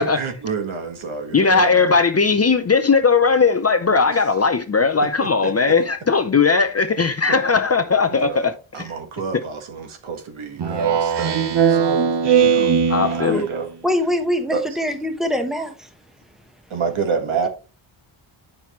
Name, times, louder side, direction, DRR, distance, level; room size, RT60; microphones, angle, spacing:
voice 1, 0.0-1.9 3.9-4.2 5.0-5.5 8.2-8.5 8.7-12.7 13.0-13.7 14.5-14.6 16.7-17.5, right 5 dB, 70° right, 1.6 m, -28 dB
voice 2, 1.3-9.0 12.9-13.4, left 4 dB, 30° left, 0.6 m, -18 dB
Speech synthesizer, 10.6-13.6, right 7 dB, 55° right, 1.1 m, -19 dB
voice 3, 13.8-15.9, equal, ahead, 1.1 m, -23 dB
8.9 x 5.8 x 3.1 m
wide cardioid pair, 120°, 49 cm